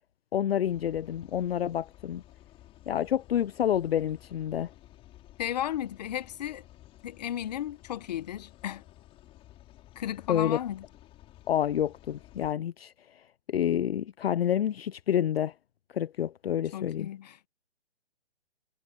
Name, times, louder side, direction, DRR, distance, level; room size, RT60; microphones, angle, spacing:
voice 1, 0.3-2.2 2.9-4.7 10.3-10.6 11.5-13.2 13.5-15.5 15.9-17.1, left 10 dB, 65° left, 0.6 m, -28 dB
sound 1, 0.6-12.5, left 14 dB, 15° left, 4.8 m, -54 dB
voice 2, 5.4-6.6 7.0-8.8 10.0-10.8 16.7-17.5, left 11 dB, 40° left, 1.0 m, -34 dB
hypercardioid pair, 160°, 33 cm